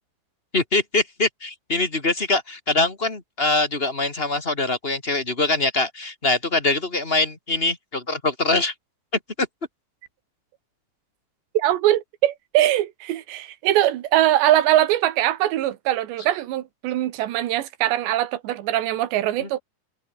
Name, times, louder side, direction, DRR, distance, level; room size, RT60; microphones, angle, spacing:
voice 1, 0.5-8.7 9.4-9.5 19.4-19.5, left 2 dB, 20° left, 1.5 m, -23 dB
voice 2, 11.6-19.6, right 13 dB, 80° right, 3.7 m, -22 dB
omnidirectional pair, 4.9 m